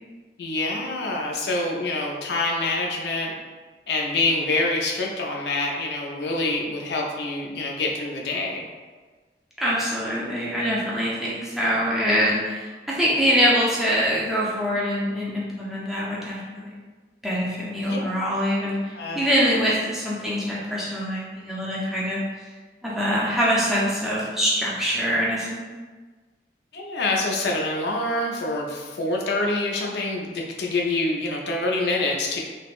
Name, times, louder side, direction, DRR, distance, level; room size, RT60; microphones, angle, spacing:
voice 1, 0.4-3.4 3.9-8.7 17.8-18.2 18.9-19.2 26.7-32.4, left 2 dB, 70° left, 0 dB, 0.4 m, -26 dB
voice 2, 9.6-16.8 17.2-22.2 22.8-25.7, equal, ahead, -7 dB, 0.4 m, -24 dB
3.3 x 2.1 x 2.4 m, 1.4 s
head